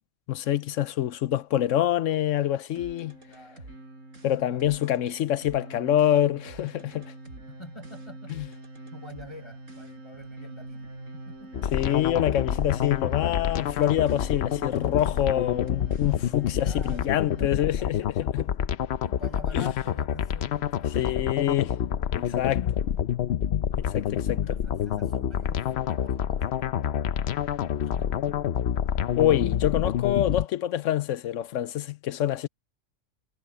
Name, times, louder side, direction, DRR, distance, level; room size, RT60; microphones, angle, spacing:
voice 1, 0.3-3.2 4.2-7.1 8.4-8.5 11.7-18.5 19.5-19.7 20.9-21.7 22.1-22.6 23.8-24.4 29.2-32.5, left 12 dB, 80° left, 1.0 m, -26 dB
sound 1, 2.7-17.5, right 2 dB, 90° right, 5.9 m, -44 dB
voice 2, 3.3-3.7 4.3-5.1 7.5-8.4 8.9-11.7 16.5-21.3 22.2-22.6 23.9-27.1 27.8-28.4 29.4-29.7, left 1 dB, 20° left, 6.2 m, -48 dB
sound 2, 11.5-30.5, left 10 dB, 60° left, 0.9 m, -28 dB
omnidirectional pair, 1.3 m